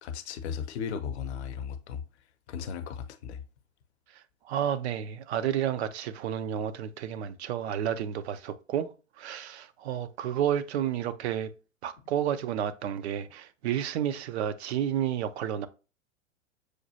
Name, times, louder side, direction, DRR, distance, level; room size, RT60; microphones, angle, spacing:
voice 1, 0.0-2.0 2.5-3.4, left 7 dB, 55° left, 0.7 m, -36 dB
voice 2, 4.5-8.9 9.2-11.5 11.8-15.7, right 10 dB, 55° right, 0.5 m, -31 dB
6.3 x 2.3 x 2.7 m
hypercardioid pair, 105°, 39 cm